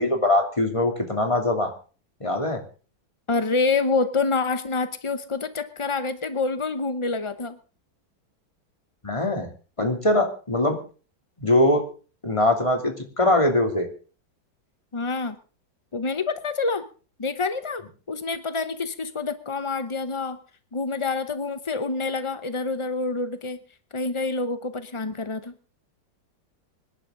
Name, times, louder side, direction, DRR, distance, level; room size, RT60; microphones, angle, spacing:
voice 1, 0.0-1.7 2.2-2.6 9.0-9.5 9.8-10.8 11.4-11.8 12.2-13.9, left 1 dB, 15° left, 3 dB, 3.0 m, -22 dB
voice 2, 3.3-7.6 14.9-15.4 15.9-16.9 17.2-20.4 20.7-23.6 23.9-25.5, left 3 dB, 40° left, 11 dB, 0.4 m, -27 dB
25.5 x 11.0 x 3.8 m, 0.37 s
omnidirectional pair, 2.0 m